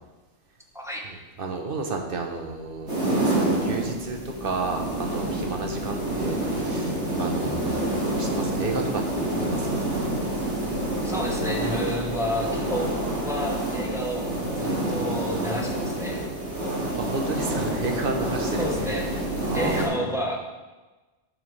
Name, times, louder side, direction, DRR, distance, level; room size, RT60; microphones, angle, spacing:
voice 1, 1.0-9.9 16.9-18.7 19.5-20.0, right 3 dB, 55° right, 3 dB, 1.1 m, -32 dB
sound 1, 2.3-19.8, right 1 dB, 25° right, 1.5 m, -43 dB
sound 2, 2.9-19.9, right 1 dB, 90° right, 2.6 m, -28 dB
voice 2, 11.0-16.2 18.6-19.1 19.5-20.4, left 1 dB, 5° right, -1 dB, 1.0 m, -31 dB
11.0 x 6.2 x 3.3 m, 1.2 s
omnidirectional pair, 1.2 m